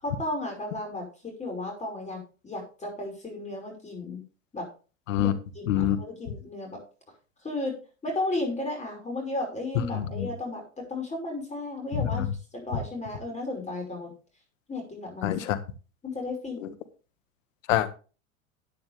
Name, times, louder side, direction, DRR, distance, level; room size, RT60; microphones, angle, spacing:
voice 1, 0.0-4.2 4.5-4.7 5.2-6.8 7.4-12.2 12.5-14.1 14.7-15.3 16.0-16.7, left 2 dB, 15° left, 1 dB, 5.5 m, -34 dB
voice 2, 5.7-6.0 9.9-10.3 12.0-12.3 15.2-15.6 17.7-18.0, left 11 dB, 75° left, 11 dB, 1.6 m, -26 dB
12.0 x 9.5 x 3.5 m, 0.36 s
hypercardioid pair, 100°, 39 cm